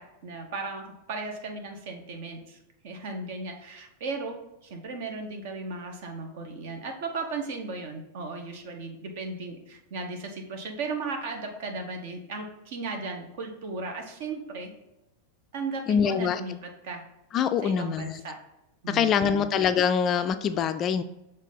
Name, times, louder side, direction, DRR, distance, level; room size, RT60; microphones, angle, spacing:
voice 1, 0.0-2.6 2.8-4.3 4.6-14.7 15.5-17.0 17.6-18.4 18.8-19.4, right 3 dB, 50° right, 4 dB, 1.1 m, -36 dB
voice 2, 15.9-16.4 17.3-18.1 18.9-21.0, left 7 dB, 30° left, 10 dB, 0.3 m, -24 dB
6.3 x 3.8 x 3.9 m, 0.90 s
figure-of-eight pair, 90°, 0 cm